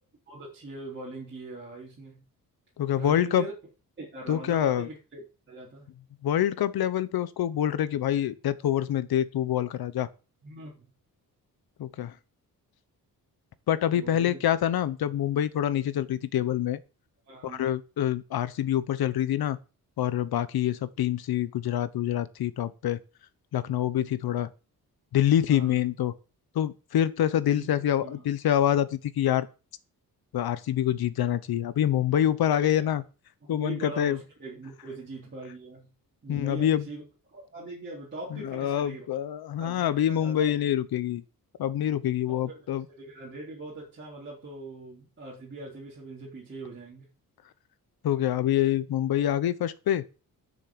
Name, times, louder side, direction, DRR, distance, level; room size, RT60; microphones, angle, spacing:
voice 1, 0.3-2.2 3.0-3.5 4.0-5.9 10.4-10.9 13.9-14.4 17.3-17.7 25.5-25.8 27.5-28.2 32.4-32.8 33.4-35.9 36.2-37.0 37.3-39.1 39.6-40.5 42.4-47.1, right 2 dB, 30° right, 4.0 m, -41 dB
voice 2, 2.8-3.4 4.3-4.9 6.2-10.1 11.8-12.1 13.7-16.8 17.4-19.6 20.0-23.0 23.5-24.5 25.1-26.1 26.5-29.5 30.3-33.0 33.5-34.2 36.3-36.8 38.3-41.2 41.6-42.8 48.0-50.0, left 11 dB, 85° left, 1.0 m, -26 dB
10.5 x 6.4 x 7.8 m
wide cardioid pair, 145°, 36 cm